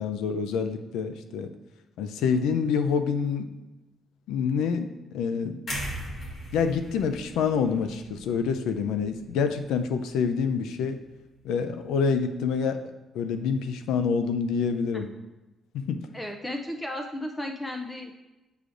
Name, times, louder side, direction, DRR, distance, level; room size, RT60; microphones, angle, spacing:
voice 1, 0.0-1.5 2.0-3.5 4.3-5.6 6.5-11.0 11.4-12.8 13.1-15.1 15.7-16.0, left 6 dB, 90° left, 9 dB, 0.4 m, -27 dB
sound 1, 5.7-9.7 10.1-10.3, equal, 50° left, 1.6 m, -39 dB
voice 2, 16.1-18.1, left 1 dB, 15° left, 3 dB, 0.5 m, -34 dB
8.0 x 4.9 x 2.5 m, 1.0 s
cardioid pair, 90°, 0 cm